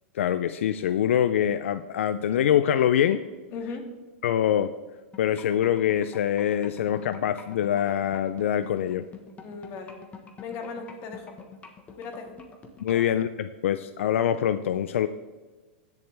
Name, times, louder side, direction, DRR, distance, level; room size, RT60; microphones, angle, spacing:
voice 1, 0.1-3.2 4.2-4.7 5.2-9.1 12.8-15.1, left 10 dB, 80° left, 12 dB, 0.4 m, -24 dB
voice 2, 3.5-3.9 9.4-10.0 10.4-11.3 11.9-12.3 12.9-13.0, left 4 dB, 40° left, 4 dB, 1.8 m, -37 dB
sound 1, 5.1-13.1, left 6 dB, 20° left, 1.2 m, -45 dB
15.5 x 7.1 x 3.4 m, 1.3 s
hypercardioid pair, 135°, 7 cm